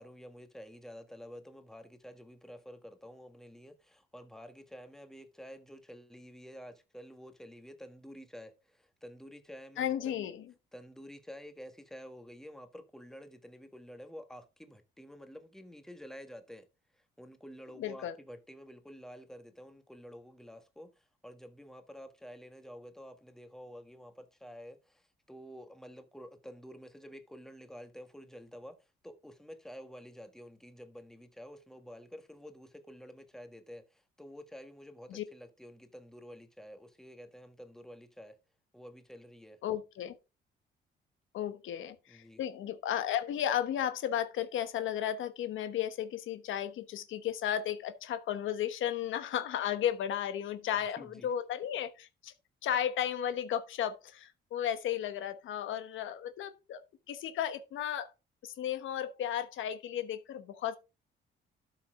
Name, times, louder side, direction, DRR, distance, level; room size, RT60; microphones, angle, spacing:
voice 1, 0.0-10.3 10.7-16.7 16.9-28.8 29.0-38.4 38.7-39.6 42.1-42.4 51.0-51.3, equal, ahead, 1.6 m, -50 dB
voice 2, 9.8-10.4 17.8-18.1 35.1-35.2 39.6-40.1 41.3-52.3 52.6-56.8 57.1-58.1 58.4-60.8, left 10 dB, 80° left, 1.1 m, -34 dB
12.5 x 5.9 x 3.7 m
cardioid pair, 90°, 20 cm